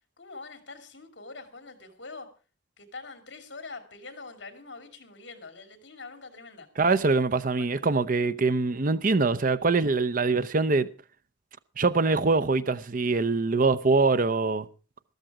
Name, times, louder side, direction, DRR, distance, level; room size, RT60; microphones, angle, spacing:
voice 1, 0.2-2.3 2.8-6.7 7.6-7.7, left 3 dB, 65° left, 2.8 m, -44 dB
voice 2, 6.8-10.9 11.8-14.7, right 3 dB, 45° right, 0.7 m, -24 dB
13.5 x 13.5 x 4.9 m
head